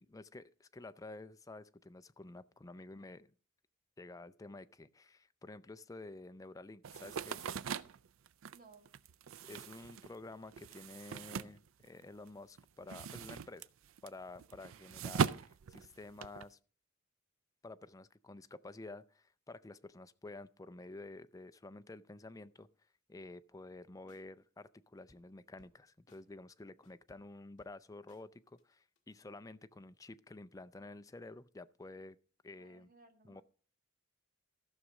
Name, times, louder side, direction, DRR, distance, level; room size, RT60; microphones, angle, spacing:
voice 1, 0.0-3.3 4.0-7.5 9.5-13.7 14.0-16.6 17.6-22.7 23.1-32.2 32.4-32.9 33.2-33.4, left 2 dB, 15° left, 0.4 m, -51 dB
sound 1, 6.8-12.3 12.6-16.5, right 6 dB, 80° right, 0.4 m, -40 dB
voice 2, 8.5-8.9 32.6-33.4, right 3 dB, 45° right, 1.6 m, -61 dB
sound 2, 24.1-24.2 25.1-25.8 26.1-26.2 26.6-28.2 28.6-29.2, left 2 dB, 35° left, 1.7 m, -69 dB
14.5 x 6.3 x 4.8 m
head